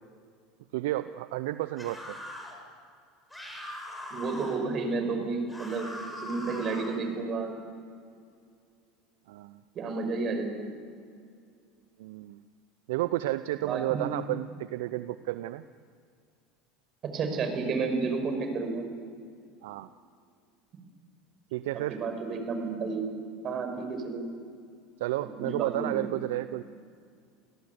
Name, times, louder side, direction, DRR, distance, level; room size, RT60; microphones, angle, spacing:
voice 1, 0.7-2.2 9.3-9.6 12.0-12.4 12.9-15.6 19.6-19.9 21.5-22.0 25.0-26.6, right 16 dB, 70° right, 14 dB, 0.6 m, -32 dB
sound 1, 1.8-2.6 3.3-4.6 5.5-7.0, left 1 dB, 10° left, 7.3 m, -41 dB
voice 2, 4.1-5.9 6.2-7.6 9.8-10.7 13.6-14.0 17.1-18.8 21.7-23.1 23.4-24.2 25.2-25.3 25.6-26.1, right 4 dB, 45° right, 6 dB, 5.4 m, -31 dB
28.0 x 17.5 x 8.1 m, 2.2 s
hypercardioid pair, 80°, 0 cm